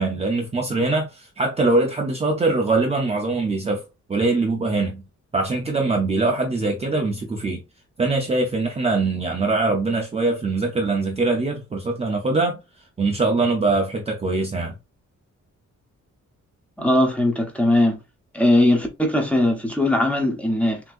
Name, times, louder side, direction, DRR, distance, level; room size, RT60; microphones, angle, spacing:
voice 1, 0.0-3.8 4.1-5.0 5.3-7.6 8.0-12.6 13.0-14.7, right 3 dB, 20° right, 0.6 m, -22 dB
voice 2, 16.8-18.0 18.3-20.8, left 1 dB, 5° left, 0.9 m, -19 dB
6.1 x 2.8 x 2.5 m
wide cardioid pair, 180°, 30 cm